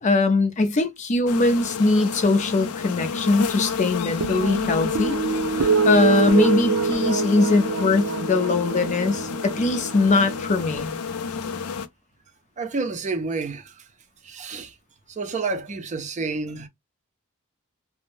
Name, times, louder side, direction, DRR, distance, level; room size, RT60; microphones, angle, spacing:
voice 1, 0.0-5.2 5.5-10.9, left 3 dB, 35° left, 0.5 m, -21 dB
sound 1, 1.3-11.9, left 5 dB, 85° left, 0.5 m, -30 dB
sound 2, 4.2-10.8, right 6 dB, 80° right, 0.5 m, -26 dB
voice 2, 12.6-13.8 14.2-14.7 15.1-16.7, right 3 dB, 35° right, 0.5 m, -29 dB
2.6 x 2.1 x 3.1 m
head